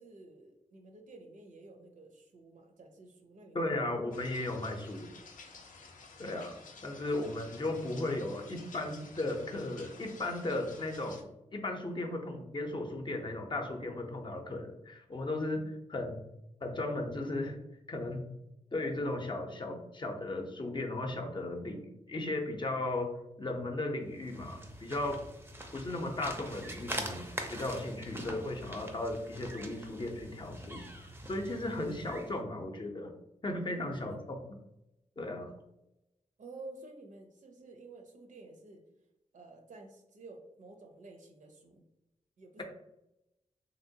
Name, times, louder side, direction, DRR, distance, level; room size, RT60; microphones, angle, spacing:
voice 1, 0.0-3.7 4.5-4.8 11.2-11.4 15.5-15.8 32.4-32.7 33.7-34.2 36.4-38.8 39.3-41.8 42.4-42.6, right 2 dB, 75° right, 3 dB, 0.6 m, -52 dB
voice 2, 3.5-5.1 6.2-11.2 11.5-15.6 15.9-16.2 16.6-17.6 17.9-18.2 18.7-23.1 23.4-25.2 25.7-30.8 31.3-33.1 33.4-34.4 35.2-35.5, left 2 dB, 35° left, 3 dB, 0.5 m, -36 dB
sound 1, 4.1-11.2, left 4 dB, 90° left, 0.5 m, -53 dB
sound 2, 24.1-32.4, right 1 dB, 15° right, 0.5 m, -43 dB
2.9 x 2.9 x 2.7 m, 0.88 s
wide cardioid pair, 90°, 13 cm